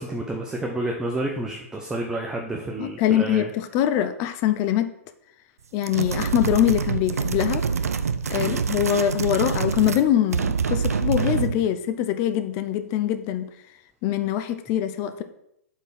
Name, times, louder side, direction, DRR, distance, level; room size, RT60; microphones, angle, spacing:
voice 1, 0.0-3.5 8.4-8.6, right 1 dB, 5° right, 1 dB, 0.9 m, -30 dB
voice 2, 2.8-4.9 5.7-7.6 8.3-13.5 14.0-15.2, left 11 dB, 35° left, 10 dB, 0.6 m, -23 dB
sound 1, 5.8-10.1 10.3-11.6, right 6 dB, 80° right, 0.6 m, -26 dB
7.9 x 4.7 x 5.9 m, 0.78 s
hypercardioid pair, 120°, 8 cm